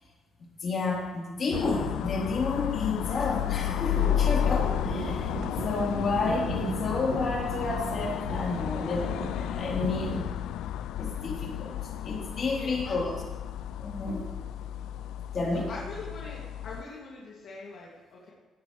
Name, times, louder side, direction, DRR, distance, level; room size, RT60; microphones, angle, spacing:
voice 1, 0.6-5.3 5.6-9.1 9.4-10.3 11.0-11.7 12.0-13.2 13.8-14.2 15.3-15.7, left 3 dB, 50° left, -3 dB, 3.9 m, -30 dB
sound 1, 1.5-16.8, left 11 dB, 85° left, 0.3 m, -32 dB
sound 2, 3.8-10.3, right 5 dB, 65° right, 1.3 m, -38 dB
voice 2, 12.6-12.9 15.7-18.3, left 3 dB, 70° left, -5 dB, 2.6 m, -42 dB
17.0 x 10.0 x 3.4 m, 1.4 s
cardioid pair, 90°, 0 cm